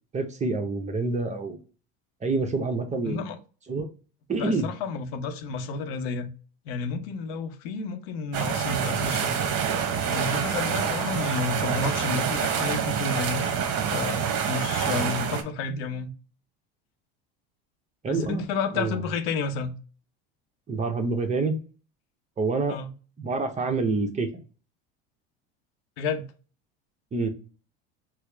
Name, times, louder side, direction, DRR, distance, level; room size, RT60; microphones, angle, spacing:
voice 1, 0.1-1.6 2.2-3.3 3.7-3.9 4.3-4.7 18.0-18.4 18.7-19.0 20.7-21.5 22.4-22.7 23.2-24.3 27.1-27.3, right 3 dB, 25° right, 0.7 m, -27 dB
voice 2, 3.0-3.4 4.4-6.3 6.7-9.5 10.1-13.5 13.9-16.1 18.1-19.7 22.7-22.9 26.0-26.2, left 4 dB, 80° left, 0.7 m, -31 dB
sound 1, 8.3-15.4, right 7 dB, 55° right, 0.8 m, -27 dB
4.4 x 2.0 x 3.3 m
supercardioid pair, 100°, 29 cm